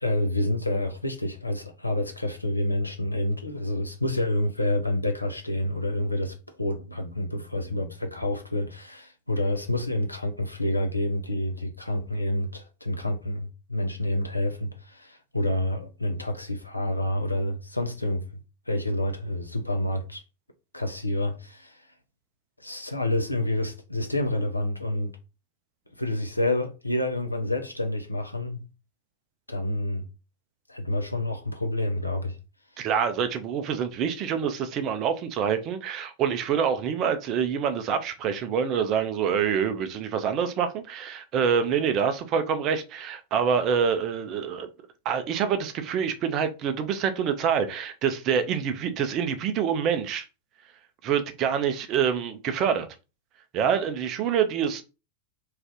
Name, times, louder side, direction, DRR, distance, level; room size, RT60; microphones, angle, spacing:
voice 1, 0.0-18.3 18.7-20.2 20.7-21.8 22.6-25.1 26.0-28.6 29.5-30.1 30.7-32.4, left 1 dB, 85° left, 0.5 m, -28 dB
voice 2, 32.8-44.7 45.1-50.2 51.0-52.9 53.5-54.8, right 7 dB, 35° right, 0.5 m, -26 dB
2.5 x 2.4 x 3.5 m
figure-of-eight pair, 90°, 0 cm